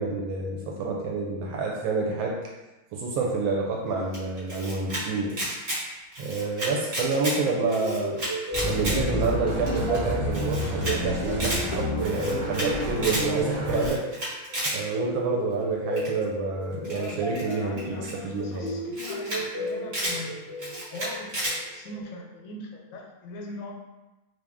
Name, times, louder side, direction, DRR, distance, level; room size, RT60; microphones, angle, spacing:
voice 1, 0.0-2.4 2.9-5.4 6.2-8.2 8.6-14.0 14.7-18.8, right 3 dB, 75° right, -2 dB, 1.3 m, -28 dB
Camera, 4.1-5.0 5.3-5.8 6.1-7.4 7.7-9.0 9.3-9.4 9.7-9.8 9.9-10.0 10.3-10.9 11.2-11.6 12.0-12.7 13.0-13.2 13.7-14.8 16.0-16.2 16.8-18.1 18.7-18.8 18.9-19.4 19.7-20.2 20.6-21.6, right 1 dB, 40° right, 1.4 m, -31 dB
sound 1, 7.6-22.4, equal, 45° left, 0.8 m, -36 dB
sound 2, 8.5-13.9, equal, 15° right, 0.5 m, -29 dB
voice 2, 16.9-23.7, left 2 dB, 75° left, 0 dB, 1.2 m, -40 dB
3.2 x 2.7 x 3.4 m, 1.1 s
omnidirectional pair, 2.3 m